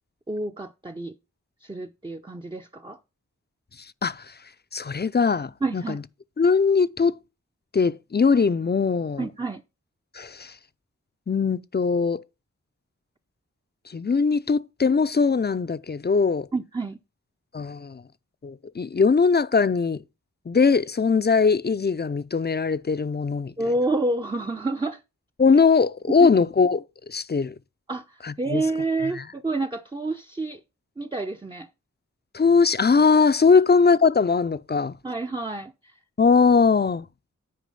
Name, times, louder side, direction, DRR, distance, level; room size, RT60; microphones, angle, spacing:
voice 1, 0.3-1.2 1.6-3.0 5.6-6.0 9.2-9.6 16.5-17.0 23.6-25.0 26.2-26.3 27.9-30.6 31.0-31.7 35.0-35.7, right 2 dB, 15° right, 0.6 m, -28 dB
voice 2, 4.0-4.3 4.7-6.0 6.4-7.1 7.7-9.3 10.1-10.6 11.3-12.2 13.9-16.5 17.5-18.0 18.4-20.0 20.5-23.5 25.4-27.5 28.2-28.6 29.1-29.2 32.3-35.0 36.2-37.1, left 5 dB, 35° left, 0.5 m, -21 dB
9.4 x 4.9 x 5.3 m
wide cardioid pair, 50°, 31 cm